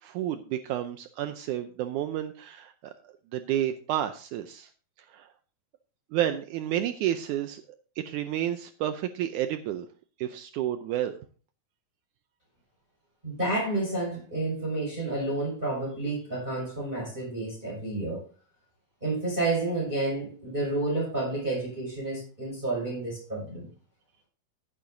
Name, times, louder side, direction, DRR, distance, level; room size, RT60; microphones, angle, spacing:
voice 1, 0.0-4.7 5.1-5.3 6.1-7.6 8.0-9.9 10.2-11.2, right 11 dB, 80° right, 1.8 m, -31 dB
voice 2, 13.2-18.2 19.0-23.7, right 2 dB, 15° right, 6.2 m, -30 dB
15.5 x 8.9 x 2.7 m
omnidirectional pair, 4.2 m